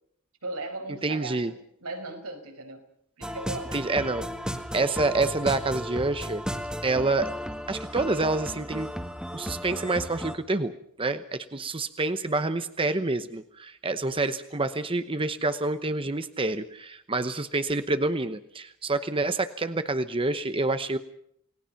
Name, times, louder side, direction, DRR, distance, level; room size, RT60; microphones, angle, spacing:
voice 1, 0.4-2.9 3.2-3.8, right 2 dB, 90° right, 4 dB, 5.1 m, -37 dB
voice 2, 1.0-1.5 3.7-4.3 4.7-6.4 6.8-7.3 7.7-8.9 9.3-10.7 11.0-21.0, right 2 dB, 25° right, 10 dB, 0.9 m, -27 dB
sound 1, 3.2-10.3, equal, 5° right, 1.8 m, -35 dB
28.5 x 19.5 x 5.8 m, 0.71 s
head